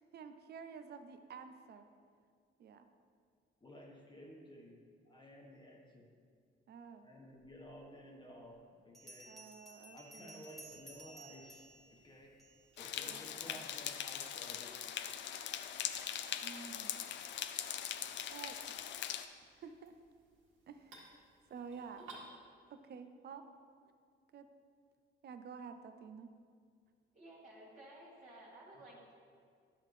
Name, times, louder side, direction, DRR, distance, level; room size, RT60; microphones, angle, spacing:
voice 1, 0.0-1.9 2.6-2.9 6.7-7.1 9.3-10.4 13.1-13.2 13.5-13.6 16.4-17.0 18.3-18.6 19.6-19.9 20.7-21.0 21.5-22.0 22.7-23.4 23.8-23.9 24.3-24.5 25.2-26.3, right 6 dB, 55° right, 9 dB, 0.6 m, -50 dB
voice 2, 3.6-6.1 7.0-9.4 9.9-12.3 12.8-14.8, equal, 25° left, -1 dB, 1.2 m, -54 dB
Bell, 8.9-12.8, right 2 dB, ahead, 1.2 m, -56 dB
sound 1, 10.5-22.3, right 3 dB, 80° right, 1.9 m, -62 dB
sound 2, 12.8-19.3, left 10 dB, 65° left, 0.4 m, -41 dB
voice 3, 27.1-29.1, right 1 dB, 40° right, -6 dB, 1.7 m, -55 dB
10.0 x 5.7 x 3.3 m, 2.1 s
cardioid pair, 90°, 20 cm